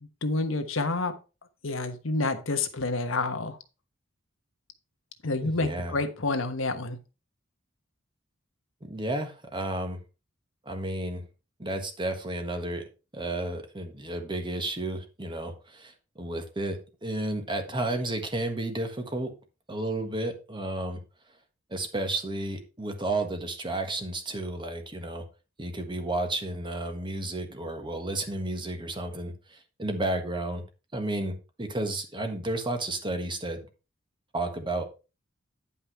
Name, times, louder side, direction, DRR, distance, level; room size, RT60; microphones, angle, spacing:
voice 1, 0.2-1.1 1.6-3.6 5.2-7.0, left 3 dB, 85° left, 8 dB, 1.2 m, -28 dB
voice 2, 5.4-6.0 8.8-10.0 10.6-11.2 11.6-12.9 13.1-19.3 19.7-21.0 21.7-25.2 25.6-30.6 30.9-33.6 34.3-34.8, right 2 dB, 25° right, 6 dB, 1.4 m, -32 dB
9.9 x 5.5 x 4.4 m, 0.31 s
head